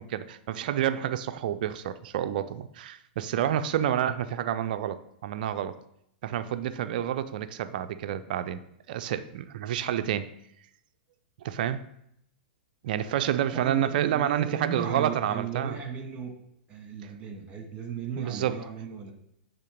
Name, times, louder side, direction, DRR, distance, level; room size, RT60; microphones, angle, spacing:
voice 1, 0.0-5.8 6.2-8.6 8.9-10.3 11.4-11.9 12.8-15.8 18.2-18.6, right 10 dB, 55° right, 11 dB, 0.5 m, -29 dB
voice 2, 13.5-16.4 16.7-19.1, right 6 dB, 20° right, 3 dB, 1.8 m, -35 dB
8.3 x 3.6 x 5.2 m, 0.75 s
figure-of-eight pair, 105°, 6 cm